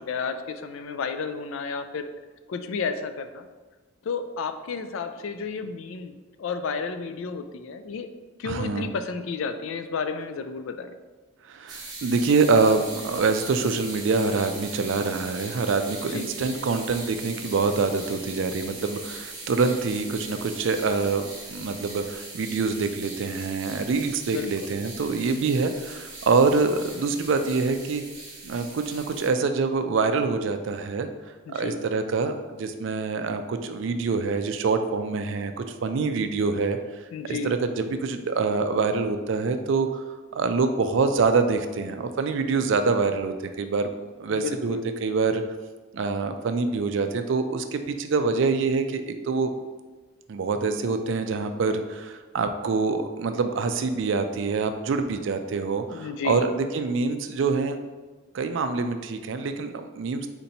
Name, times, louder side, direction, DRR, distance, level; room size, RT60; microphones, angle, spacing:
voice 1, 0.0-2.1 2.5-3.5 4.0-8.1 8.4-10.9 16.0-16.3 24.2-24.7 31.5-31.8 37.1-37.5 44.3-44.8 55.9-56.4, left 5 dB, 65° left, 9 dB, 0.3 m, -32 dB
voice 2, 8.4-8.9 11.5-28.0 28.4-31.1 31.5-36.8 37.2-40.0 40.3-43.9 44.2-45.4 45.9-49.5 50.3-57.8 58.3-60.3, right 4 dB, 60° right, 8 dB, 0.3 m, -25 dB
sound 1, 11.7-29.3, right 3 dB, 20° right, 0.7 m, -40 dB
4.3 x 2.8 x 4.0 m, 1.3 s
head